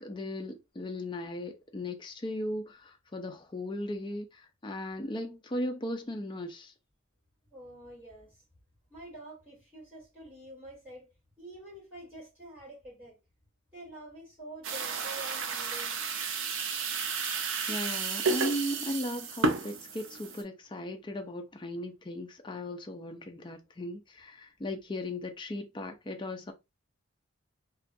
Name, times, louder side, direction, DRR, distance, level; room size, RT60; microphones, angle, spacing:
voice 1, 0.0-6.7 17.7-26.5, left 1 dB, 20° left, 0.4 m, -37 dB
voice 2, 7.5-8.4 8.9-11.1 11.4-13.2 13.7-16.0, right 1 dB, 10° right, 1.5 m, -47 dB
sound 1, 14.6-20.4, right 4 dB, 70° right, 0.5 m, -32 dB
2.4 x 2.2 x 2.5 m
head